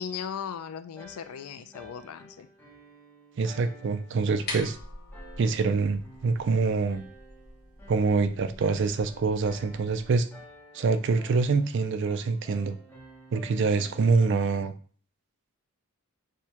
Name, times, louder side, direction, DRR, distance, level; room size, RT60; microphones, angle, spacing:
voice 1, 0.0-2.5, left 7 dB, 80° left, 11 dB, 0.4 m, -37 dB
sound 1, 1.0-14.6, equal, 10° left, 0.8 m, -52 dB
voice 2, 3.4-4.8 5.4-7.0 7.9-10.3 10.7-12.8 13.3-14.7, right 4 dB, 55° right, 10 dB, 0.3 m, -25 dB
sound 2, 4.2-10.2, left 2 dB, 45° left, 1.0 m, -44 dB
6.3 x 2.2 x 2.8 m, 0.42 s
head